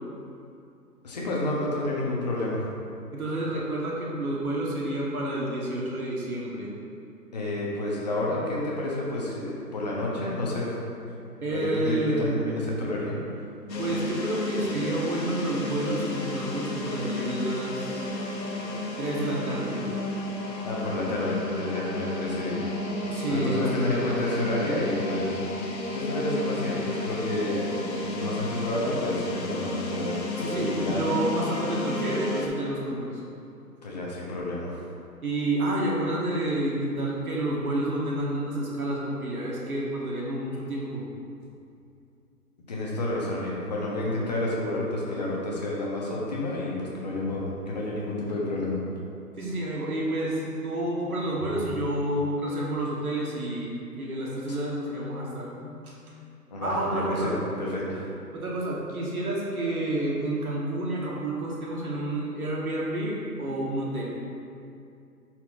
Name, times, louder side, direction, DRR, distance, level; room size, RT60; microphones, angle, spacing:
voice 1, 1.0-2.6 7.3-10.7 11.5-13.1 20.6-22.6 23.3-25.3 25.9-27.7 28.0-31.0 33.8-34.8 42.7-48.8 56.5-57.3 57.6-58.1, left 1 dB, 25° left, -5 dB, 1.0 m, -30 dB
voice 2, 3.1-6.7 11.4-12.4 13.8-18.1 19.0-19.9 23.1-24.2 30.4-33.2 35.2-41.0 49.4-56.1 56.6-57.3 58.3-64.0, right 1 dB, 60° right, -4 dB, 1.5 m, -29 dB
sound 1, 13.7-32.5, left 2 dB, 90° left, 1.2 m, -32 dB
11.0 x 4.4 x 2.6 m, 2.5 s
hypercardioid pair, 160°, 48 cm